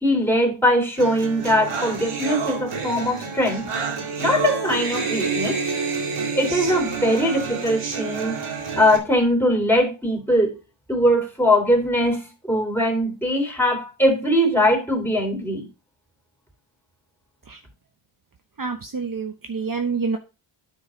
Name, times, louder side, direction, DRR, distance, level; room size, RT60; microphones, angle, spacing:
voice 1, 0.0-3.7 4.2-5.6 6.3-8.4 8.8-10.5 10.9-15.7, equal, 5° left, 1 dB, 3.8 m, -21 dB
sound 1, 1.0-9.0, right 5 dB, 75° right, 2.5 m, -28 dB
voice 2, 18.6-20.2, right 5 dB, 40° right, 5 dB, 1.0 m, -27 dB
9.7 x 4.8 x 5.1 m, 0.30 s
wide cardioid pair, 85°, 50 cm